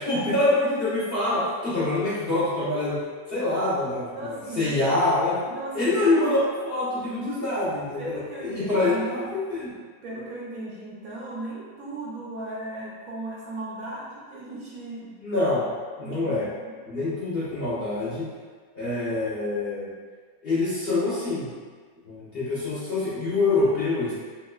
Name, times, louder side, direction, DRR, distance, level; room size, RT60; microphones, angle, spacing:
voice 1, 0.0-5.4 5.7-9.8 15.2-15.7 16.0-16.5 16.9-18.3 18.7-19.9 20.4-21.5 22.1-24.1, left 2 dB, 45° left, -10 dB, 0.8 m, -25 dB
voice 2, 4.1-4.8 5.4-6.1 8.0-9.2 10.0-15.1 16.0-16.8, right 2 dB, 65° right, -5 dB, 1.0 m, -37 dB
3.5 x 3.1 x 2.2 m, 1.5 s
omnidirectional pair, 1.7 m